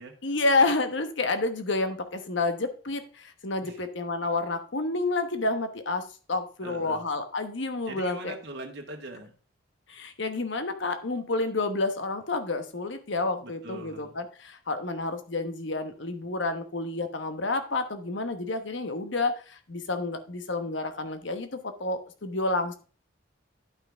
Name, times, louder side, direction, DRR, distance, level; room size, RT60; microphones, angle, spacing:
voice 1, 0.2-6.0 6.3-8.3 9.9-22.8, left 3 dB, 60° left, 8 dB, 1.2 m, -29 dB
voice 2, 6.6-7.0 7.9-9.3 13.4-14.2, right 1 dB, 55° right, 1 dB, 1.7 m, -41 dB
11.0 x 5.7 x 3.5 m, 0.37 s
head